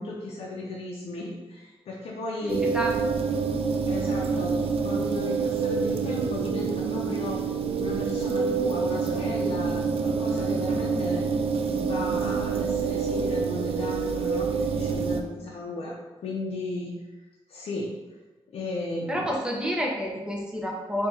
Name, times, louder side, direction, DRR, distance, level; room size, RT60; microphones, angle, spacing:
voice 1, 0.0-2.7 3.9-7.4 7.8-11.2 11.8-15.9 16.2-16.9 17.5-17.9 18.5-19.4, left 2 dB, 75° left, -3 dB, 0.5 m, -35 dB
voice 2, 2.4-2.9 19.1-21.1, equal, 10° right, -2 dB, 0.9 m, -29 dB
sound 1, 2.5-15.2, right 5 dB, 65° right, 0.4 m, -27 dB
4.5 x 2.7 x 2.7 m, 1.2 s
cardioid pair, 90°, 10 cm